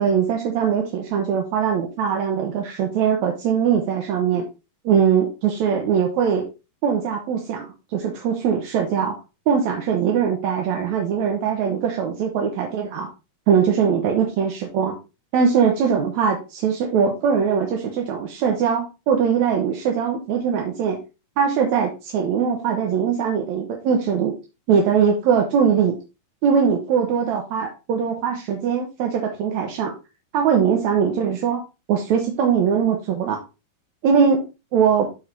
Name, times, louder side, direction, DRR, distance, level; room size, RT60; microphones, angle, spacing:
voice 1, 0.0-4.5 4.8-6.5 6.8-9.1 9.5-13.1 13.5-15.0 15.3-21.0 21.4-24.3 24.7-26.0 26.4-29.9 30.3-31.6 31.9-33.4 34.0-34.4 34.7-35.1, right 7 dB, 65° right, 2 dB, 2.0 m, -21 dB
12.0 x 4.9 x 2.8 m, 0.29 s
omnidirectional pair, 4.2 m